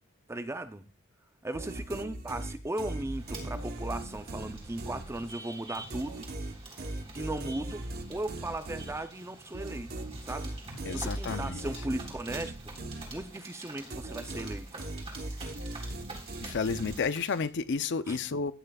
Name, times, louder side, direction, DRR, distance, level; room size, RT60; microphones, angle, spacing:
voice 1, 0.3-0.8 1.4-6.3 7.2-7.8 8.1-9.9 10.3-10.5 10.9-12.8 13.1-14.7 18.1-18.2, right 1 dB, 15° right, 0.5 m, -37 dB
sound 1, 1.5-5.5 5.9-13.5 13.9-17.4, right 1 dB, 45° right, 0.9 m, -39 dB
sound 2, 3.0-17.5, right 2 dB, 30° right, 3.9 m, -48 dB
voice 2, 10.8-11.6 16.4-18.5, left 5 dB, 55° left, 0.5 m, -31 dB
15.5 x 10.0 x 2.3 m
head